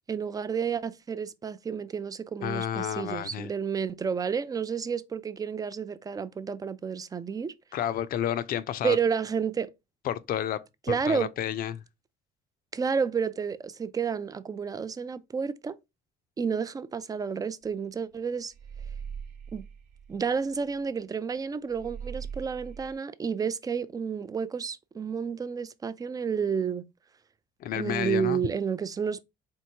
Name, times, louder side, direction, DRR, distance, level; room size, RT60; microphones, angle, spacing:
voice 1, 0.1-7.5 8.8-9.7 10.9-11.3 12.7-15.8 16.4-18.5 19.5-19.7 20.1-26.8 27.7-29.2, right 6 dB, 20° right, 0.3 m, -30 dB
voice 2, 2.4-3.5 7.7-9.0 10.0-10.6 10.9-11.8 27.6-28.4, left 10 dB, 60° left, 0.5 m, -30 dB
sound 1, 17.6-17.8 18.1-21.0 21.2-21.3 21.7-22.9, right 7 dB, 70° right, 0.9 m, -41 dB
4.5 x 3.5 x 2.7 m
cardioid pair, 110°, 17 cm